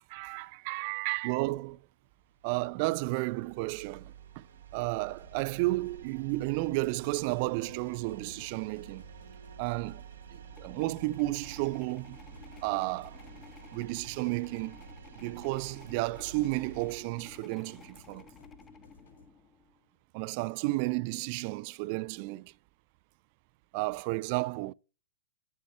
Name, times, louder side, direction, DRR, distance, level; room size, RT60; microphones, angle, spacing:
voice 1, 0.0-1.8 2.4-4.5 4.7-9.0 9.6-10.0 10.3-12.2 12.6-13.2 13.7-14.8 15.2-18.3 20.1-22.5 23.7-24.7, right 22 dB, 45° right, 0.3 m, -32 dB
sound 1, 2.0-17.0, right 7 dB, 65° right, 1.1 m, -50 dB
sound 2, 5.0-19.3, left 3 dB, 75° left, 2.0 m, -59 dB
sound 3, 10.4-19.8, left 5 dB, 20° left, 0.8 m, -54 dB
9.2 x 5.4 x 4.6 m
figure-of-eight pair, 110°, 0 cm